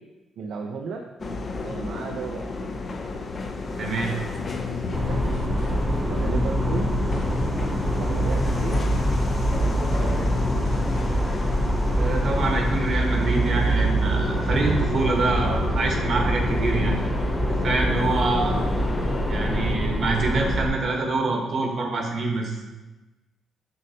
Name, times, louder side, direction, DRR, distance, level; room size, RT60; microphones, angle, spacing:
voice 1, 0.4-1.0 1.6-2.7 4.7-5.3 6.1-6.9 7.9-8.9 9.5-10.4 18.2-18.7, right 5 dB, 70° right, 2 dB, 0.5 m, -35 dB
sound 1, 1.2-19.8, left 3 dB, 40° left, 0.6 m, -32 dB
voice 2, 3.8-4.1 12.0-17.0 17.6-18.6 19.3-22.5, right 3 dB, 55° right, 2 dB, 1.1 m, -25 dB
sound 2, 4.3-11.4, left 5 dB, 75° left, 0.4 m, -32 dB
sound 3, 4.9-20.7, right 1 dB, 15° right, 1.0 m, -25 dB
6.5 x 5.3 x 2.8 m, 1.1 s
cardioid pair, 90°, 0 cm